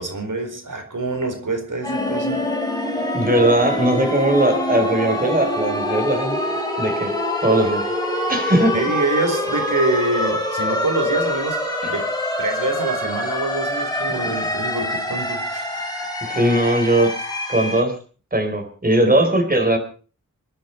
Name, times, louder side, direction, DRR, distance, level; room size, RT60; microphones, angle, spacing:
voice 1, 0.0-2.4 8.7-12.1 12.4-15.8, right 2 dB, 70° right, 6 dB, 4.5 m, -25 dB
sound 1, 1.8-17.8, left 1 dB, 10° left, 4.2 m, -25 dB
voice 2, 3.1-6.4 6.8-7.1 7.4-7.9 8.3-8.8 11.8-11.9 14.1-14.3 16.2-17.1 17.5-18.0 18.3-19.8, right 1 dB, 25° right, 4 dB, 4.3 m, -19 dB
27.5 x 10.5 x 4.5 m, 0.39 s
wide cardioid pair, 85°, 32 cm